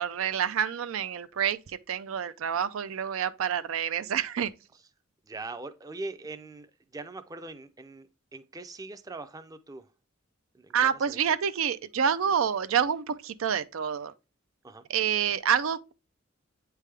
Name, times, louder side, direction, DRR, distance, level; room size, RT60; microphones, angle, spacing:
voice 1, 0.0-4.5 10.7-14.1 14.9-15.9, right 8 dB, 85° right, 0.4 m, -28 dB
voice 2, 5.2-9.9 10.5-11.2 14.6-14.8, right 2 dB, 20° right, 0.4 m, -42 dB
8.3 x 3.4 x 3.3 m
head